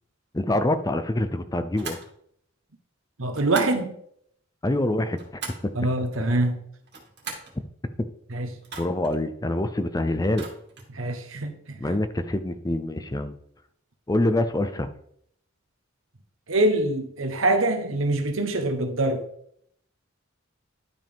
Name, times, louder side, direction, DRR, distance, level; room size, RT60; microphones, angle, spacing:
voice 1, 0.3-2.0 4.6-5.2 5.6-5.7 8.8-10.5 11.8-13.3 14.1-14.9, left 1 dB, 20° left, 10 dB, 0.5 m, -25 dB
sound 1, 1.8-2.1 3.3-3.8 4.9-5.7 6.8-7.6 8.6-9.2 10.3-10.9, right 4 dB, 55° right, 2.2 m, -39 dB
voice 2, 3.2-3.9 5.7-6.6 8.3-8.5 10.9-11.8 16.5-19.2, right 2 dB, 80° right, 6 dB, 1.2 m, -24 dB
11.5 x 5.3 x 3.6 m, 0.69 s
head